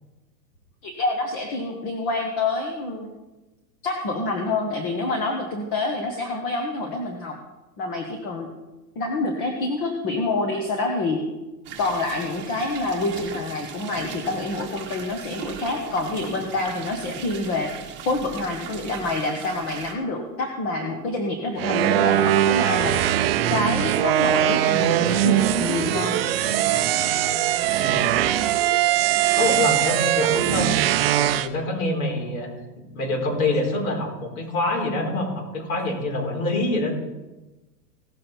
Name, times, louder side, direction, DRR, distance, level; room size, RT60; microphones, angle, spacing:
voice 1, 0.8-3.1 3.8-7.3 7.8-8.5 8.9-11.2 11.8-17.7 18.0-23.0 23.5-26.2, left 2 dB, 30° left, 2 dB, 1.3 m, -27 dB
sound 1, 11.6-19.9, right 8 dB, 25° right, 1.5 m, -39 dB
sound 2, 21.6-31.5, right 12 dB, 40° right, 0.5 m, -21 dB
voice 2, 27.8-28.1 29.4-30.7 31.2-32.5 32.9-36.9, left 2 dB, 60° left, 0 dB, 4.6 m, -25 dB
17.5 x 7.4 x 4.5 m, 1.1 s
hypercardioid pair, 155°, 48 cm